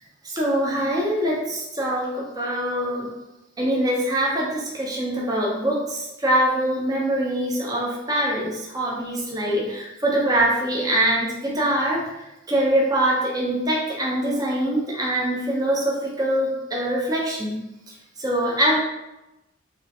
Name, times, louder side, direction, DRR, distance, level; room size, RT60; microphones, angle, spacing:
voice 1, 0.2-3.1 3.6-12.0 12.5-17.6 18.2-18.8, right 1 dB, 20° right, -3 dB, 0.4 m, -23 dB
2.4 x 2.3 x 2.6 m, 0.96 s
head